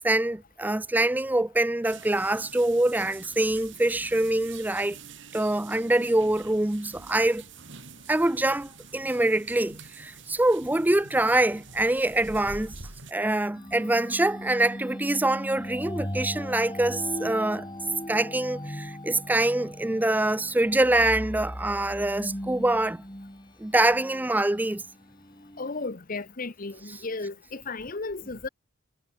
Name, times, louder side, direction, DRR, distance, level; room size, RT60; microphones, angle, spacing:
voice 1, 0.0-5.0 5.3-7.4 8.1-12.7 13.1-17.7 18.1-23.0 23.6-24.8, right 1 dB, 10° right, 0.4 m, -25 dB
sound 1, 1.8-13.1, right 4 dB, 60° right, 4.4 m, -46 dB
sound 2, 13.5-25.9, equal, 20° left, 6.8 m, -38 dB
voice 2, 25.6-28.5, left 3 dB, 40° left, 1.0 m, -34 dB
head